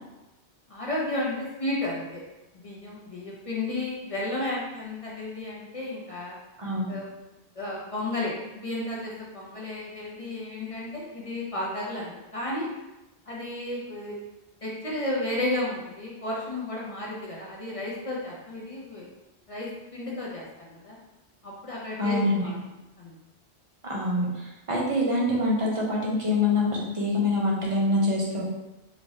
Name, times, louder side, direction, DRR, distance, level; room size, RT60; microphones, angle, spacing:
voice 1, 0.7-2.2 2.5-6.4 6.9-7.1 7.5-12.7 13.3-14.2 14.6-19.1 19.5-21.0 21.4-22.6 23.0-23.1, left 1 dB, 40° left, -5 dB, 0.6 m, -33 dB
voice 2, 6.6-6.9 22.0-22.5 23.8-28.4, left 2 dB, 35° right, -4 dB, 0.6 m, -25 dB
3.2 x 2.9 x 2.7 m, 0.99 s
omnidirectional pair, 1.1 m